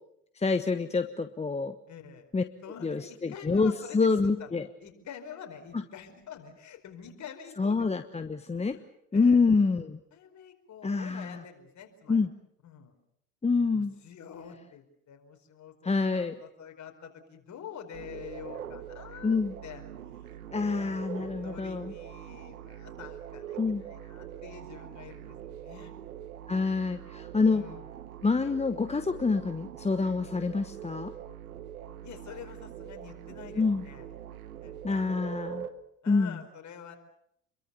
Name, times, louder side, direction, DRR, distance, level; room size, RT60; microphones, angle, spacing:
voice 1, 0.3-1.7 2.3-2.4 2.8-4.6 7.6-8.8 9.1-10.0 10.8-11.4 12.1-12.3 13.4-13.9 15.8-16.3 19.2-19.5 20.5-21.9 23.6-23.8 26.5-27.6 28.2-31.1 33.6-33.8 34.8-35.7 36.1-36.3, left 4 dB, 15° left, 9 dB, 1.2 m, -27 dB
voice 2, 1.9-2.3 2.6-4.5 4.8-8.0 8.6-8.9 9.1-9.4 10.1-12.2 12.6-12.9 13.6-19.4 19.6-19.8 20.1-25.9 27.5-27.9 32.0-34.1 34.6-35.1 36.0-37.0, left 7 dB, 40° left, 5 dB, 4.9 m, -47 dB
sound 1, 17.9-35.7, right 10 dB, 80° right, 1.4 m, -43 dB
28.5 x 23.0 x 7.0 m, 0.73 s
hypercardioid pair, 70°, 42 cm